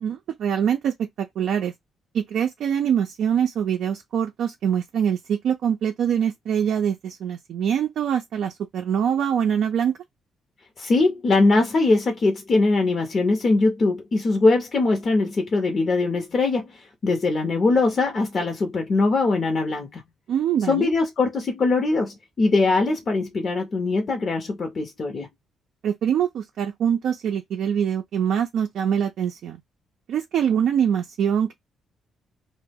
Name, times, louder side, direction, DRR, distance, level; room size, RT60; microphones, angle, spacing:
voice 1, 0.0-1.7 2.1-9.9 20.3-20.9 25.8-29.6 30.1-31.5, right 8 dB, 70° right, 0.4 m, -24 dB
voice 2, 10.8-20.0 20.7-25.3, left 3 dB, 45° left, 0.6 m, -21 dB
2.2 x 2.0 x 3.4 m
cardioid pair, 90°, 0 cm